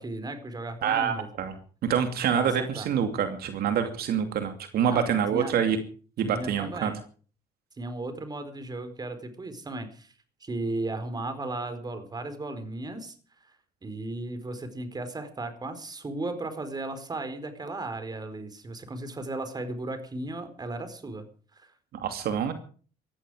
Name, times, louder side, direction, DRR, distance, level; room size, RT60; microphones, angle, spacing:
voice 1, 0.0-1.3 2.3-2.9 4.9-5.6 6.2-7.0 7.8-10.1 10.4-13.2 13.8-21.3 21.5-21.7, right 2 dB, 25° right, 10 dB, 4.5 m, -35 dB
voice 2, 0.8-1.5 1.8-5.8 6.2-6.9 21.9-22.5, right 8 dB, 65° right, 7 dB, 2.7 m, -26 dB
19.0 x 15.0 x 5.0 m, 0.42 s
cardioid pair, 110°, 17 cm